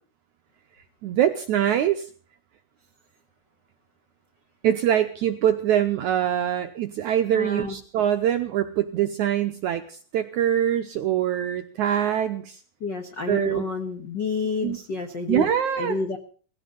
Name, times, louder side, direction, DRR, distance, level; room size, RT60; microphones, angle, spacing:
voice 1, 1.0-2.1 4.6-12.6 13.3-13.6 14.6-14.8 15.3-16.0, right 10 dB, 75° right, 7 dB, 1.8 m, -24 dB
voice 2, 7.3-7.7 12.8-16.2, left 4 dB, 75° left, 6 dB, 1.0 m, -29 dB
18.5 x 16.0 x 3.9 m, 0.41 s
omnidirectional pair, 4.4 m